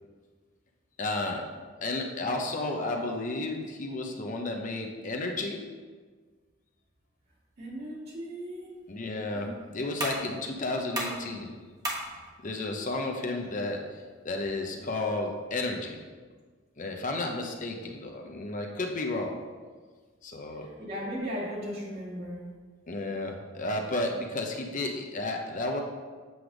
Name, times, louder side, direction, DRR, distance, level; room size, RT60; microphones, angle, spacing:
voice 1, 1.0-1.4 1.8-5.6 8.9-11.5 12.4-16.0 16.8-19.3 20.2-20.7 22.9-25.8, left 2 dB, 40° left, 2 dB, 0.7 m, -32 dB
voice 2, 7.6-8.7 9.3-9.5 20.5-22.4, equal, 55° right, -5 dB, 2.3 m, -37 dB
sound 1, 8.5-15.5, right 1 dB, 20° right, 1.3 m, -41 dB
7.8 x 3.4 x 6.1 m, 1.5 s
head